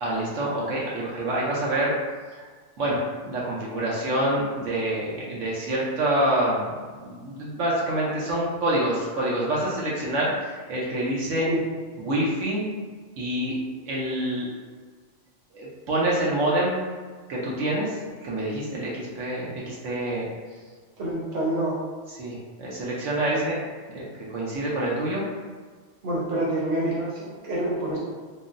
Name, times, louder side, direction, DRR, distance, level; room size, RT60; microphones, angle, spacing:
voice 1, 0.0-1.9 2.4-2.5 2.8-11.5 12.0-12.7 13.2-13.5 13.9-14.5 15.5-16.7 17.3-20.3 22.2-23.6 23.9-25.2, right 1 dB, 75° right, -6 dB, 1.0 m, -27 dB
voice 2, 21.0-21.8 23.3-23.4 26.0-28.0, right 1 dB, 45° right, -6 dB, 0.9 m, -27 dB
3.7 x 2.0 x 2.5 m, 1.5 s
omnidirectional pair, 1.3 m